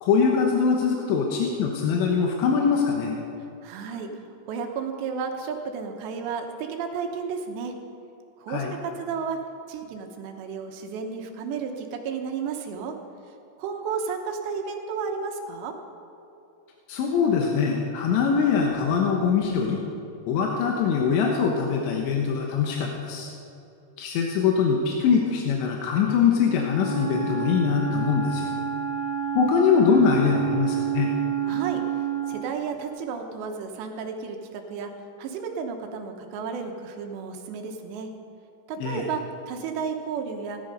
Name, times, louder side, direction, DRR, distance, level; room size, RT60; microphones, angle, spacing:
voice 1, 0.0-3.2 8.5-8.8 16.9-19.8 20.3-23.3 24.0-28.5 29.4-31.1 38.8-39.1, left 6 dB, 85° left, 0 dB, 3.5 m, -23 dB
voice 2, 3.6-4.1 4.5-7.7 8.4-9.4 9.7-12.9 13.6-15.7 31.5-31.8 32.3-34.9 35.2-38.1 38.7-40.6, right 6 dB, 80° right, 4 dB, 3.3 m, -32 dB
Wind instrument woodwind instrument, 26.4-32.5, right 8 dB, 40° right, 3.1 m, -29 dB
17.0 x 12.0 x 5.3 m, 2.8 s
omnidirectional pair, 5.0 m